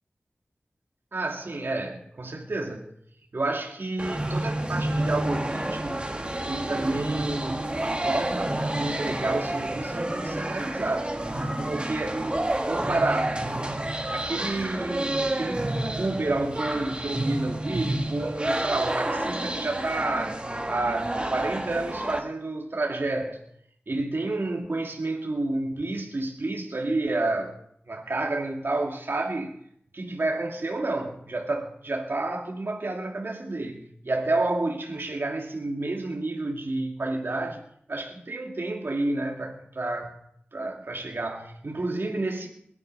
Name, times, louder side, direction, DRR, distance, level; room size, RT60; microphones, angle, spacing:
voice 1, 1.1-2.9 3.3-6.1 6.4-11.2 11.6-12.3 12.6-13.4 14.1-15.7 16.0-23.4 23.9-27.6 27.9-29.6 29.9-37.6 37.9-40.2 40.5-42.5, right 2 dB, 65° right, 0 dB, 2.4 m, -30 dB
sound 1, 4.0-22.2, right 1 dB, 25° right, 2.3 m, -29 dB
21.0 x 11.0 x 5.5 m, 0.71 s
wide cardioid pair, 65°, 4 cm